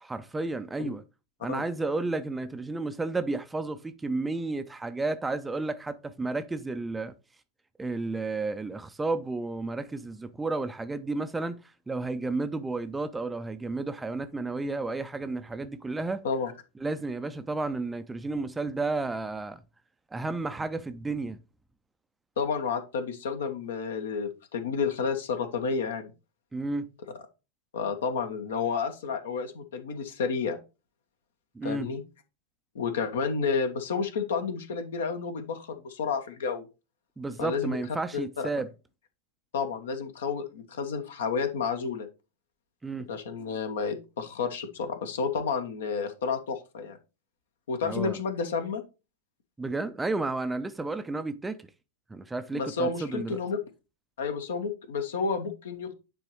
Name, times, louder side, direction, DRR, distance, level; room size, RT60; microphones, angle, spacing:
voice 1, 0.0-1.0 1.4-7.1 7.8-16.2 16.8-19.6 20.1-21.4 26.5-26.9 31.5-31.9 37.2-38.7 42.8-43.1 47.8-48.2 49.6-51.7 52.1-53.4, right 3 dB, 10° right, 0.5 m, -32 dB
voice 2, 22.4-26.1 27.7-30.6 31.6-32.0 32.7-36.7 37.4-37.8 38.1-38.5 39.5-42.1 43.1-47.0 47.7-48.8 52.5-53.6 54.2-55.9, left 5 dB, 60° left, 1.1 m, -30 dB
9.8 x 3.9 x 3.0 m
figure-of-eight pair, 90°, 0 cm